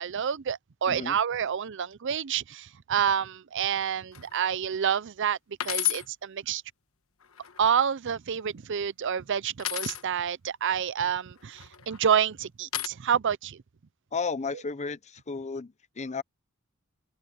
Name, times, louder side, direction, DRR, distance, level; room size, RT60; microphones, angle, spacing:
voice 1, 0.0-5.4 5.6-6.6 7.6-13.6, right 8 dB, 60° right, 0.5 m, -28 dB
voice 2, 0.9-1.2 14.1-15.0 15.3-16.2, left 4 dB, 35° left, 0.7 m, -33 dB
sound 1, 4.1-4.4 4.9-5.0 5.6-6.1 7.2-7.9 9.6-10.0 11.5-12.0 12.7-12.9, left 13 dB, 75° left, 1.3 m, -31 dB
head